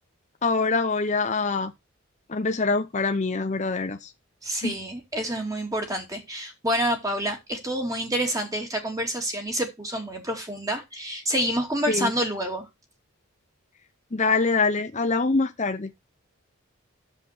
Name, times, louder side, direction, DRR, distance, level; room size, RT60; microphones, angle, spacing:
voice 1, 0.4-1.7 2.3-4.1 4.6-4.7 11.9-12.1 14.1-15.9, left 3 dB, 30° left, 0.7 m, -24 dB
voice 2, 4.4-12.7, right 1 dB, 15° right, 2.5 m, -28 dB
10.0 x 7.6 x 4.4 m
head